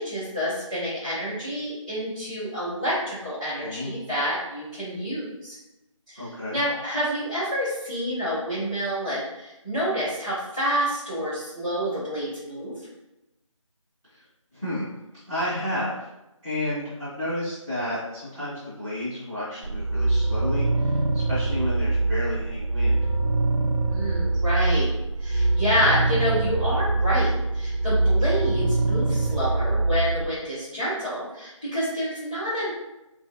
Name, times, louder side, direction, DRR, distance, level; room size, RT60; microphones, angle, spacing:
voice 1, 0.0-5.6 6.1-12.7 23.9-24.9 25.2-32.7, equal, 15° left, -16 dB, 0.5 m, -28 dB
voice 2, 3.6-4.1 6.2-6.6 14.1-14.3 14.5-15.0 15.3-16.1 16.4-23.1, left 1 dB, 5° right, -17 dB, 0.8 m, -31 dB
sound 1, 19.6-30.3, right 2 dB, 85° right, 0.4 m, -24 dB
3.1 x 2.4 x 2.7 m, 0.94 s
figure-of-eight pair, 165°, 17 cm